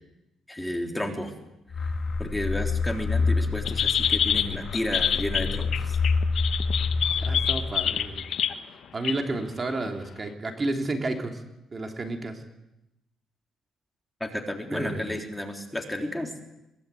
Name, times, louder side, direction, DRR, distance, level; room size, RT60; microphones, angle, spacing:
voice 1, 0.5-1.3 1.7-6.0 14.2-16.4, left 1 dB, 10° left, 4 dB, 3.5 m, -32 dB
sound 1, 1.7-8.2, left 4 dB, 45° left, 2.5 m, -28 dB
sound 2, 3.7-8.5 9.0-9.3 9.9-10.0, left 9 dB, 65° left, 1.2 m, -26 dB
voice 2, 7.1-8.2 8.9-11.4 11.7-12.4 14.7-15.1, right 2 dB, 30° right, 4 dB, 3.2 m, -31 dB
22.5 x 21.0 x 8.5 m, 0.89 s
cardioid pair, 90°, 0 cm